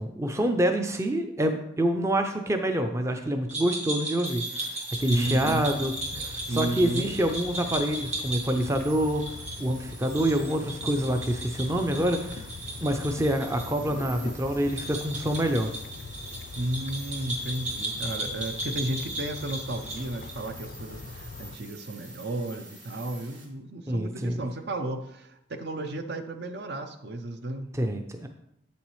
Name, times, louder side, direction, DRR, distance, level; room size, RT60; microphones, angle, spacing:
voice 1, 0.0-12.5 12.8-15.7 23.9-24.4 27.7-28.3, right 1 dB, 15° right, 5 dB, 0.5 m, -27 dB
sound 1, 3.5-13.7 13.9-14.0 14.7-20.4, right 1 dB, 40° right, 1.7 m, -36 dB
sound 2, 4.3-23.4, right 3 dB, 90° right, 3.1 m, -48 dB
sound 3, 5.0-21.6, left 4 dB, 50° left, 0.4 m, -42 dB
voice 2, 5.1-5.7 6.5-7.2 16.6-27.7, right 1 dB, 60° right, 8 dB, 0.7 m, -33 dB
8.1 x 7.1 x 3.1 m, 0.78 s
head